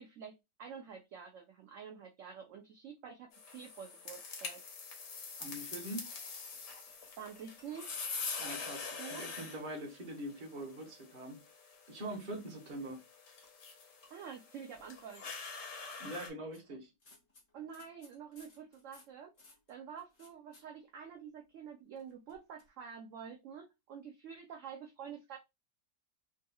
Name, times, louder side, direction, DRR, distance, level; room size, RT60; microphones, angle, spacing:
voice 1, 0.0-4.6 7.2-7.9 9.0-9.3 14.1-15.3 17.5-25.4, right 7 dB, 70° right, 0.7 m, -48 dB
sound 1, 3.3-16.3, left 4 dB, 80° left, 1.5 m, -45 dB
voice 2, 5.4-6.0 8.4-11.4 11.9-13.0 16.0-16.9, right 1 dB, 40° right, 0.8 m, -43 dB
sound 2, 6.5-8.8 9.1-9.3 9.9-11.4 11.7-11.9 12.5-12.9 13.4-13.5 13.8-14.1 14.7-15.1 15.7-20.6 22.0-22.7, left 2 dB, 40° left, 1.4 m, -64 dB
3.6 x 2.8 x 2.2 m
omnidirectional pair, 1.8 m